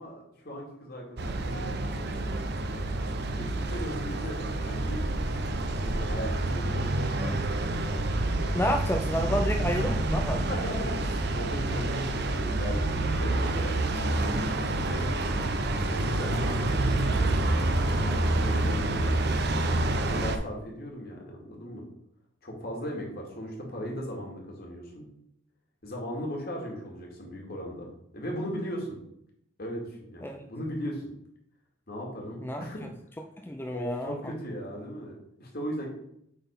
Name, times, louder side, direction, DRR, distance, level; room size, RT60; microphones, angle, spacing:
voice 1, 0.0-1.6 1.9-2.1 3.4-5.2 5.7-8.3 9.3-9.4 10.5-15.0 15.9-19.1 19.9-21.8 22.4-25.1 25.8-27.9 28.1-28.9 29.6-31.0 31.9-32.8 33.7-35.9, equal, 50° left, -1 dB, 2.4 m, -38 dB
sound 1, 1.2-20.4, right 2 dB, 55° right, 0.7 m, -28 dB
voice 2, 8.5-10.4 30.2-30.5 32.4-32.7 33.4-34.2, equal, 10° left, 3 dB, 0.4 m, -30 dB
8.4 x 4.1 x 5.3 m, 0.72 s
head